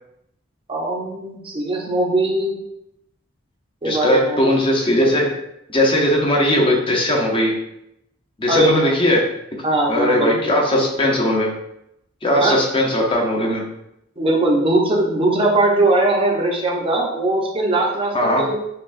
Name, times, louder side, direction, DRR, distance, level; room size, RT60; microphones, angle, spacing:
voice 1, 0.7-2.6 3.8-4.4 8.5-8.9 9.6-10.8 12.4-12.6 14.2-18.5, right 2 dB, 25° right, -1 dB, 0.7 m, -20 dB
voice 2, 3.8-5.3 5.7-7.5 8.4-9.2 9.9-11.5 12.2-13.6 18.1-18.4, left 1 dB, 25° left, -1 dB, 0.8 m, -18 dB
5.6 x 2.4 x 2.5 m, 0.81 s
head